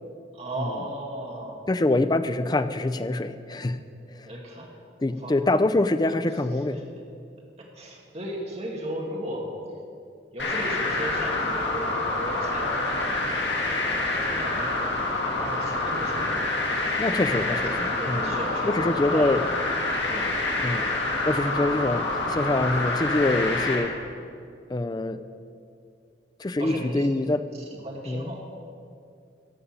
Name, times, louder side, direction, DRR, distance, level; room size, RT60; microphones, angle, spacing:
voice 1, 0.3-1.6 4.3-4.7 5.1-5.3 6.7-6.8 7.6-9.5 10.3-13.8 14.0-14.8 15.4-16.5 17.1-19.4 20.1-20.3 26.6-27.1 27.7-28.4, right 1 dB, 35° right, -2 dB, 2.2 m, -36 dB
voice 2, 1.7-3.9 4.1-4.3 5.0-6.8 17.0-18.3 18.6-19.4 20.6-20.9 21.2-23.9 24.7-25.2 26.4-27.4 28.1-28.3, left 2 dB, 20° left, 11 dB, 0.4 m, -25 dB
sound 1, 10.4-23.8, left 2 dB, 80° left, 2.4 m, -27 dB
14.0 x 5.3 x 8.9 m, 2.4 s
head